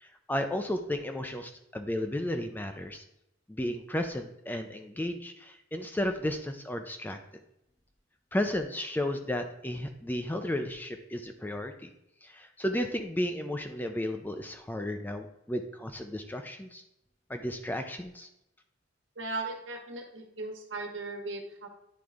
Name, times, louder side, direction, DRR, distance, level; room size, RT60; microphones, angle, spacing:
voice 1, 0.0-3.0 3.5-7.2 8.3-11.9 12.2-16.8 17.3-18.3, left 1 dB, 10° left, 6 dB, 0.4 m, -33 dB
voice 2, 19.1-21.7, right 3 dB, 70° right, 2 dB, 1.4 m, -37 dB
9.4 x 3.8 x 3.5 m, 0.82 s
head